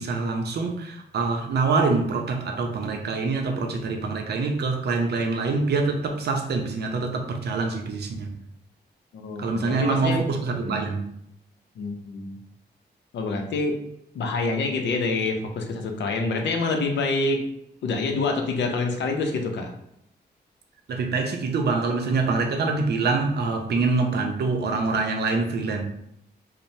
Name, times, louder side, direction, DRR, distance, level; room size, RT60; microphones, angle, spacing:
voice 1, 0.0-8.3 9.4-11.1 20.9-25.8, right 4 dB, 70° right, 3 dB, 0.5 m, -25 dB
voice 2, 9.1-10.3 10.6-10.8 11.8-12.4 13.1-13.8 14.1-17.5 17.8-19.7, left 3 dB, 85° left, 3 dB, 0.5 m, -26 dB
3.0 x 2.0 x 2.6 m, 0.76 s
cardioid pair, 80°, 18 cm